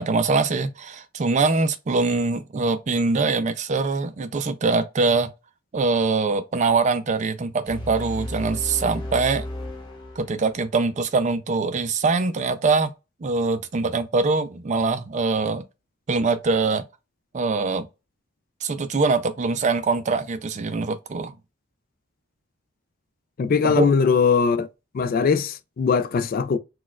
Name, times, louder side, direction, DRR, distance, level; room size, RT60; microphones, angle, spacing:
voice 1, 0.0-5.3 5.7-9.5 10.2-12.9 13.2-15.6 16.1-16.8 17.3-17.9 18.6-21.3 23.6-23.9, right 3 dB, 35° right, 0.4 m, -23 dB
sound 1, 7.6-10.7, left 1 dB, 20° left, 0.9 m, -34 dB
voice 2, 23.4-24.7 24.9-26.6, left 5 dB, 40° left, 0.3 m, -20 dB
4.2 x 2.3 x 2.3 m
head